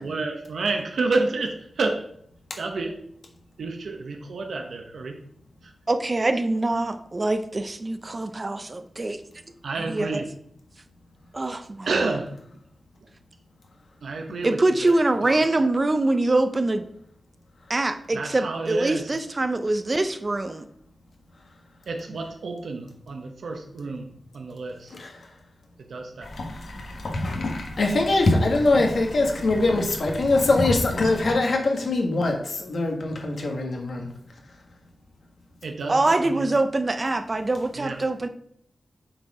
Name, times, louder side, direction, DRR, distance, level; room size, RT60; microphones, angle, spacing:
voice 1, 0.0-2.0 2.6-2.9 3.6-5.2 9.6-10.3 11.9-12.3 14.0-14.9 15.2-15.4 18.1-19.2 21.9-24.1 24.3-24.9 25.9-26.3 31.0-31.1 35.6-36.5 37.8-38.0, right 3 dB, 80° right, 3 dB, 0.9 m, -29 dB
voice 2, 5.9-9.2 9.8-10.2 11.3-12.1 14.4-16.9 17.7-20.7 35.9-38.3, right 2 dB, 30° right, 9 dB, 0.6 m, -24 dB
sound 1, 26.2-31.3, left 2 dB, 80° left, 1.4 m, -35 dB
voice 3, 27.1-34.1, left 2 dB, 60° left, 2 dB, 1.5 m, -23 dB
7.7 x 4.5 x 4.8 m, 0.69 s
wide cardioid pair, 140°, 0 cm